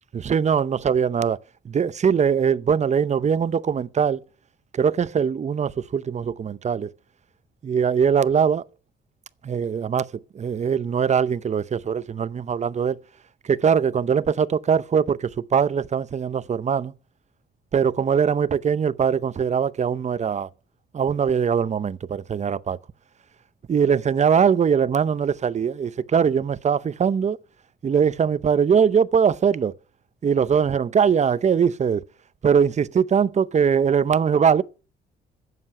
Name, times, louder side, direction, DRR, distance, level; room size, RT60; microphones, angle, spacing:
voice 1, 0.1-1.4 1.6-4.2 4.7-6.9 7.6-8.6 9.4-10.1 10.3-13.0 13.4-16.9 17.7-20.5 20.9-22.8 23.7-27.4 27.8-29.7 30.2-32.0 32.4-34.6, right 7 dB, 35° right, 0.7 m, -21 dB
11.0 x 7.6 x 7.7 m
cardioid pair, 90°, 20 cm